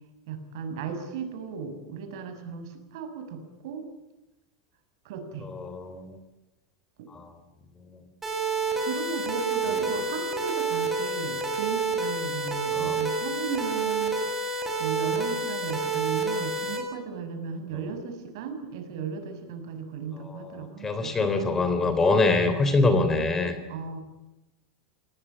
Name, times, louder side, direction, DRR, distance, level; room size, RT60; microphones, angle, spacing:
voice 1, 0.3-3.8 5.0-5.5 7.0-7.1 8.8-14.2 14.8-21.3 23.7-24.0, right 5 dB, 65° right, 8 dB, 6.5 m, -35 dB
voice 2, 5.4-6.1 7.1-7.3 7.9-8.0 9.7-9.8 12.7-13.0 20.2-23.6, left 3 dB, 15° left, 9 dB, 3.2 m, -25 dB
sound 1, 8.2-16.8, right 3 dB, 10° right, 7.2 m, -29 dB
28.5 x 19.0 x 8.7 m, 1.0 s
supercardioid pair, 155°, 2 cm